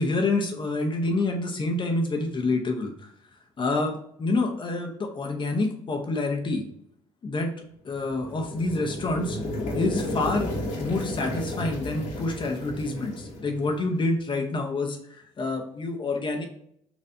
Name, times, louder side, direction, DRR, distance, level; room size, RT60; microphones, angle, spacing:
voice 1, 0.0-3.1 3.6-6.6 7.2-7.5 7.8-9.4 9.7-15.0 15.4-16.5, left 2 dB, 35° left, 2 dB, 0.7 m, -27 dB
sound 1, 8.0-14.0, left 1 dB, 70° left, 1.3 m, -33 dB
4.2 x 2.6 x 2.6 m, 0.69 s
hypercardioid pair, 60°, 14 cm